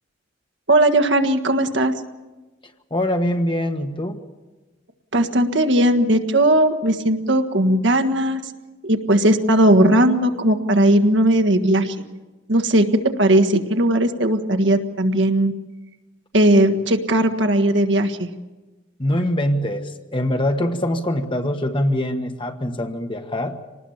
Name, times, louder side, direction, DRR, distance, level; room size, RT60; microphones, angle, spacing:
voice 1, 0.7-1.9 5.1-8.4 8.8-11.9 12.5-15.5 16.3-18.3, right 1 dB, 65° right, 6 dB, 1.6 m, -17 dB
voice 2, 2.9-4.2 19.0-23.6, left 1 dB, 25° left, 6 dB, 1.4 m, -23 dB
26.0 x 19.5 x 7.2 m, 1.2 s
head